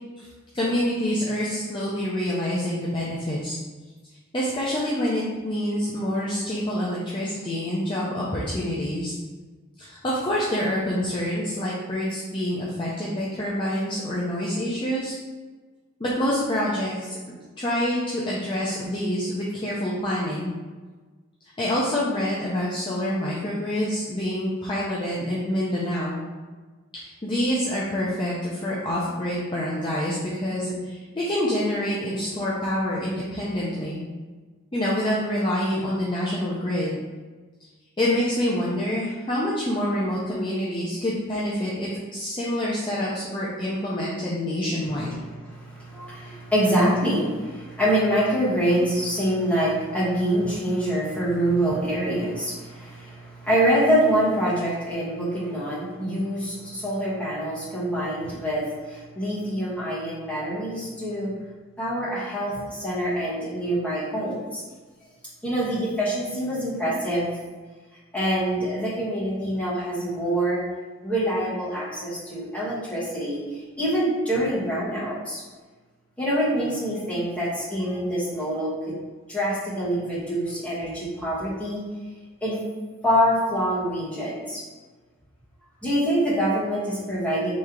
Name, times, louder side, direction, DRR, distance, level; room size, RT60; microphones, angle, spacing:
voice 1, 0.5-3.6 4.3-9.1 9.8-15.1 16.0-17.1 17.6-20.5 21.6-26.2 26.9-34.0 34.7-37.0 38.0-45.1, left 1 dB, 25° left, -6 dB, 0.5 m, -27 dB
voice 2, 45.2-61.3 61.8-64.6 65.4-67.4 68.1-70.6 71.0-75.4 76.2-79.0 79.3-81.8 82.4-82.6 83.0-84.6 85.8-87.6, equal, 5° left, -10 dB, 1.3 m, -25 dB
3.2 x 3.1 x 3.6 m, 1.3 s
head